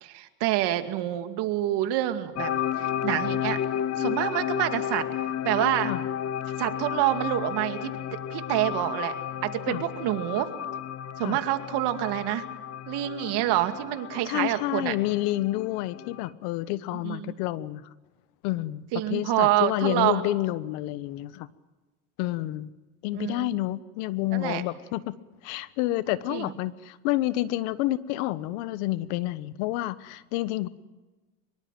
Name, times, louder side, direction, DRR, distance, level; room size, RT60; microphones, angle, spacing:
voice 1, 0.0-2.5 2.8-3.6 4.0-5.1 5.4-5.9 6.6-8.0 8.3-9.1 9.4-10.5 11.2-12.4 12.9-14.9 17.0-17.3 18.9-20.2 23.1-23.5 24.3-24.6 26.3-26.5, right 14 dB, 65° right, 8 dB, 2.4 m, -27 dB
sound 1, 2.4-16.3, left 10 dB, 35° left, 1.0 m, -32 dB
voice 2, 14.2-17.8 18.4-18.8 19.1-21.5 22.2-22.7 23.0-25.1 25.4-30.7, left 16 dB, 80° left, 15 dB, 1.3 m, -29 dB
24.0 x 22.5 x 7.6 m, 1.2 s
supercardioid pair, 110°, 42 cm